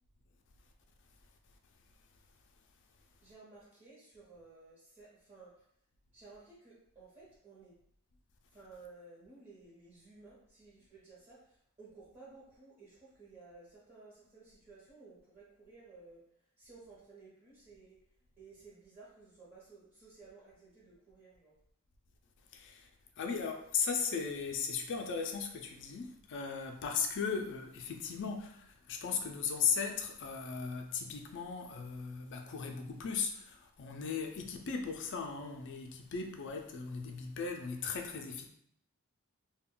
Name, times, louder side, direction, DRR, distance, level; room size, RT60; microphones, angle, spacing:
voice 1, 3.2-5.6 6.1-7.8 8.5-16.2 16.6-18.0 18.4-21.5, right 3 dB, 30° right, 0.8 m, -56 dB
voice 2, 22.5-22.9 23.2-38.5, left 6 dB, 55° left, 0.4 m, -37 dB
2.4 x 2.2 x 3.6 m
head